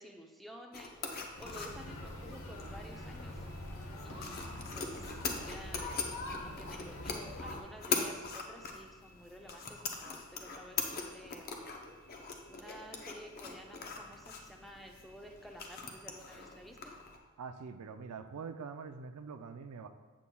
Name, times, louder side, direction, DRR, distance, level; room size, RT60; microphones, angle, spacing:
voice 1, 0.0-3.5 4.0-11.6 12.5-17.0, equal, ahead, 1 dB, 0.5 m, -52 dB
sound 1, 0.7-17.2, left 4 dB, 45° left, 0.7 m, -42 dB
sound 2, 1.3-7.6, left 1 dB, 65° left, 0.9 m, -44 dB
voice 2, 17.4-19.9, right 5 dB, 90° right, 8 dB, 0.4 m, -44 dB
8.2 x 7.3 x 2.3 m, 1.4 s
head